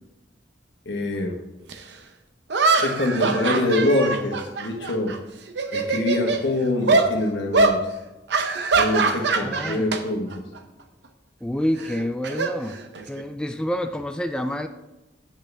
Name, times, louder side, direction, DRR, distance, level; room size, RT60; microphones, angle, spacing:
voice 1, 0.8-1.4 2.8-5.2 5.7-7.8 8.7-10.4, left 1 dB, 70° left, 3 dB, 1.3 m, -24 dB
sound 1, 1.7-1.8 2.5-5.2 5.5-6.4 6.9-7.1 7.5-7.8 8.3-10.0 10.3-10.6 11.8-13.2, right 4 dB, 65° right, 0.7 m, -22 dB
voice 2, 9.1-9.9 11.4-12.8 13.1-14.7, equal, 5° left, 7 dB, 0.3 m, -28 dB
8.6 x 8.2 x 3.4 m, 1.0 s
head